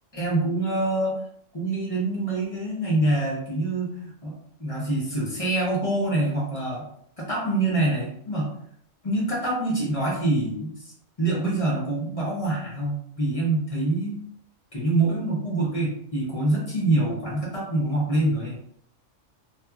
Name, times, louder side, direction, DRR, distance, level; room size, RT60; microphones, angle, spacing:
voice 1, 0.1-1.2 1.5-6.9 7.2-8.5 9.0-10.9 11.2-14.2 14.7-18.6, right 2 dB, 35° left, -5 dB, 0.7 m, -25 dB
2.9 x 2.4 x 2.3 m, 0.71 s
omnidirectional pair, 1.3 m